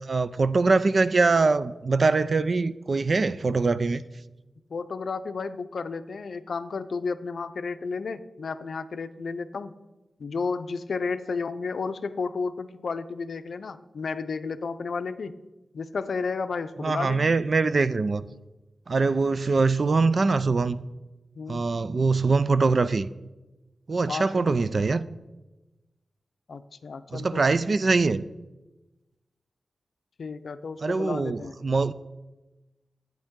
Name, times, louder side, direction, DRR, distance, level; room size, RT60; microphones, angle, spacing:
voice 1, 0.1-4.0 16.8-18.2 18.9-20.8 21.5-23.1 23.9-25.1 27.1-28.2 30.8-31.9, right 3 dB, 50° right, 0.4 m, -23 dB
voice 2, 4.7-9.7 10.2-15.4 15.7-17.3 21.4-21.7 24.1-24.6 26.5-27.7 30.2-31.6, left 4 dB, 70° left, 0.5 m, -32 dB
11.5 x 8.9 x 3.7 m
wide cardioid pair, 100°, 0 cm